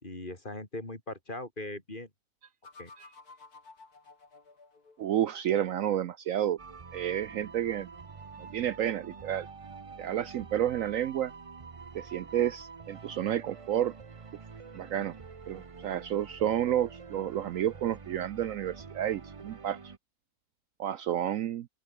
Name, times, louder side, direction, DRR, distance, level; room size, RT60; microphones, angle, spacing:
voice 1, 0.0-2.1 2.8-2.9, left 2 dB, 30° left, 4.2 m, -40 dB
sound 1, 2.6-5.5, left 3 dB, 80° left, 4.0 m, -54 dB
voice 2, 5.0-6.6 6.9-7.9 8.4-9.5 10.0-11.3 11.9-13.9 14.7-15.2 15.5-19.8 20.8-21.7, right 11 dB, 65° right, 1.0 m, -30 dB
sound 2, 6.6-20.0, right 5 dB, 30° right, 0.6 m, -47 dB
open air
omnidirectional pair, 1.6 m